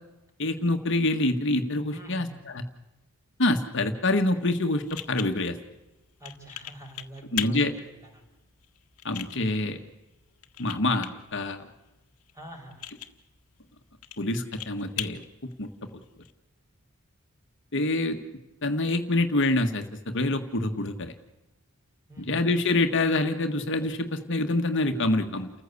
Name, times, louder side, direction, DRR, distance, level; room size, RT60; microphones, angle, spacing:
voice 1, 0.4-2.3 2.5-2.6 3.4-5.6 7.3-7.7 9.0-9.8 10.6-11.7 14.2-15.2 15.6-15.7 17.7-18.2 18.6-21.1 22.2-25.5, left 2 dB, 55° left, 6 dB, 1.6 m, -26 dB
voice 2, 1.9-2.5 6.2-8.2 12.3-12.9 22.1-22.5, right 1 dB, 15° right, 2 dB, 5.3 m, -45 dB
sound 1, 4.3-16.3, left 12 dB, 90° left, 1.6 m, -41 dB
30.0 x 15.0 x 8.4 m, 1.0 s
head